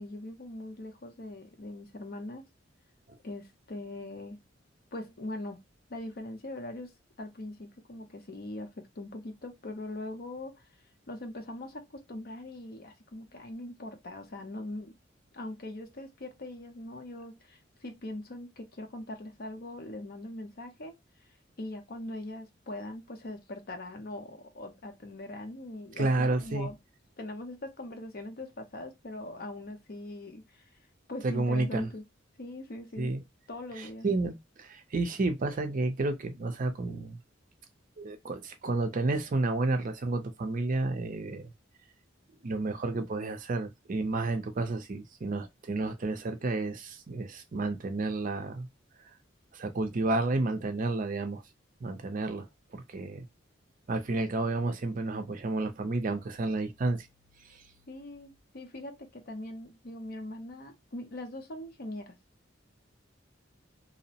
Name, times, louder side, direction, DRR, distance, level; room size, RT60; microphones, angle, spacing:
voice 1, 0.0-2.4 3.2-4.4 4.9-5.6 5.9-10.7 11.1-14.9 15.3-20.9 21.6-26.8 27.2-30.7 31.1-32.0 32.4-33.1 33.5-34.1 57.9-62.2, left 1 dB, 55° left, 0.7 m, -41 dB
voice 2, 26.0-26.7 31.2-31.9 33.0-33.2 33.8-37.2 38.0-41.5 42.4-48.7 49.5-51.4 51.8-52.5 52.7-53.3 53.9-57.1 57.5-57.6, right 2 dB, 45° right, 0.5 m, -31 dB
2.7 x 2.0 x 2.7 m
head